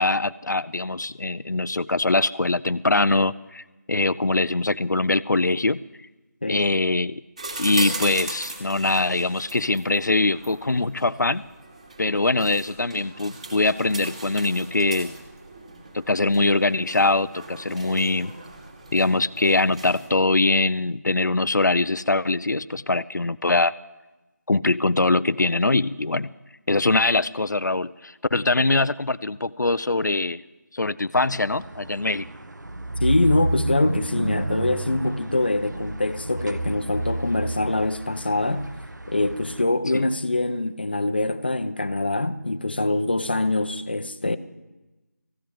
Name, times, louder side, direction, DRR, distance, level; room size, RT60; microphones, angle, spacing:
voice 1, 0.0-5.8 6.5-7.2 7.6-11.4 12.0-15.2 15.9-18.3 18.9-23.7 24.5-26.3 26.7-30.4 30.7-32.3 39.9-40.0, left 2 dB, 80° left, 0.7 m, -22 dB
sound 1, 7.4-20.1, right 2 dB, 20° right, 2.7 m, -38 dB
sound 2, 31.1-39.6, right 2 dB, 85° right, 1.4 m, -31 dB
voice 2, 33.0-38.7 39.1-44.4, left 2 dB, 35° left, 0.9 m, -24 dB
20.0 x 16.0 x 8.9 m
figure-of-eight pair, 175°, 10 cm